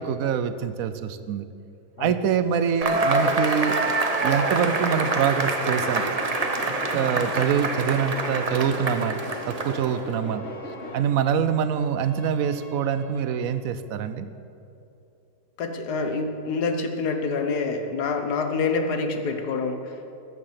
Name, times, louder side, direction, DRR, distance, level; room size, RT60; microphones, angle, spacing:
voice 1, 0.0-1.5 2.0-3.8 4.2-6.0 6.5-9.2 9.5-10.4 10.9-14.3, right 7 dB, 65° right, 11 dB, 0.9 m, -25 dB
Cheering / Applause / Crowd, 2.8-10.1, right 2 dB, 35° right, 0.6 m, -26 dB
sound 1, 3.6-13.6, right 2 dB, ahead, 3.3 m, -47 dB
sound 2, 4.6-11.0, left 1 dB, 40° left, 1.9 m, -38 dB
voice 2, 15.6-20.1, left 4 dB, 70° left, 6 dB, 1.6 m, -27 dB
14.0 x 9.5 x 5.8 m, 2.7 s
omnidirectional pair, 1.8 m